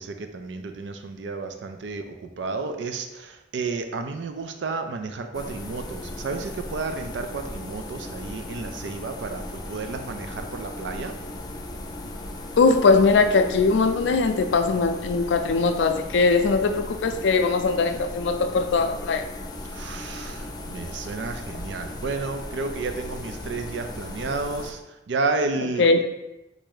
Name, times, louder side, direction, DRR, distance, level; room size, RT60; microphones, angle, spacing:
voice 1, 0.0-11.1 19.6-24.8 25.1-26.0, right 3 dB, 80° right, 6 dB, 0.5 m, -31 dB
sound 1, 5.3-24.7, left 1 dB, 20° left, 0.5 m, -37 dB
voice 2, 12.6-19.3 25.8-26.0, left 4 dB, 85° left, 8 dB, 0.4 m, -20 dB
4.2 x 2.6 x 4.7 m, 0.96 s
head